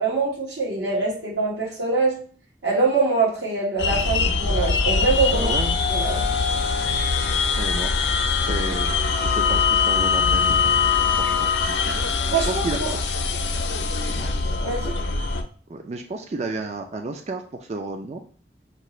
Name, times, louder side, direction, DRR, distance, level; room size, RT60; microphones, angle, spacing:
voice 1, 0.0-2.2 2.6-5.5 5.9-6.2 12.2-12.9 14.6-14.9, right 4 dB, 80° right, -3 dB, 1.3 m, -24 dB
sound 1, 3.8-15.4, left 5 dB, 90° left, 0.5 m, -22 dB
voice 2, 5.3-5.8 7.5-8.0 8.4-10.5 11.2-11.5 12.3-13.0 15.7-18.2, right 3 dB, 40° right, 4 dB, 0.4 m, -31 dB
6.4 x 2.5 x 3.0 m, 0.43 s
head